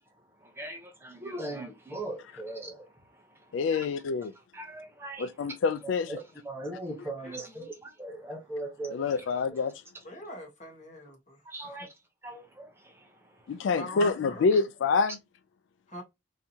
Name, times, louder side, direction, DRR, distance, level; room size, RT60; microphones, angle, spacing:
voice 1, 0.4-3.4 3.7-4.3 4.5-5.3 6.1-9.2 11.5-11.9 12.2-13.8, right 1 dB, 10° right, 0.7 m, -40 dB
voice 2, 3.5-4.3 5.2-6.2 8.9-9.7 13.5-15.2, left 4 dB, 75° left, 0.3 m, -27 dB
voice 3, 7.2-7.7 10.0-11.4 11.6-11.8 13.6-14.4 15.9-16.0, equal, 35° left, 1.4 m, -42 dB
3.5 x 2.7 x 2.8 m
head